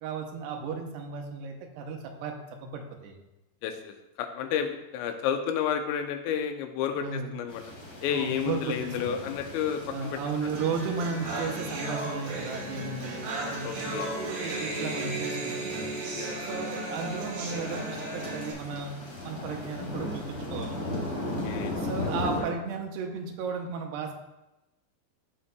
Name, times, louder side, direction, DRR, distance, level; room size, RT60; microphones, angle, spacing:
voice 1, 0.0-3.2 7.0-7.3 8.1-9.2 9.9-15.8 16.4-19.0 19.2-20.9 21.7-24.1, right 5 dB, 80° right, 3 dB, 2.7 m, -35 dB
voice 2, 3.6-7.6 8.0-10.2 13.6-14.2 16.2-16.3 21.2-21.7, left 8 dB, 90° left, 6 dB, 3.0 m, -31 dB
sound 1, 7.5-22.4, left 1 dB, 60° left, 1.1 m, -38 dB
sound 2, 10.5-18.5, right 2 dB, 60° right, 3.3 m, -35 dB
13.5 x 5.5 x 2.3 m, 0.98 s
omnidirectional pair, 5.0 m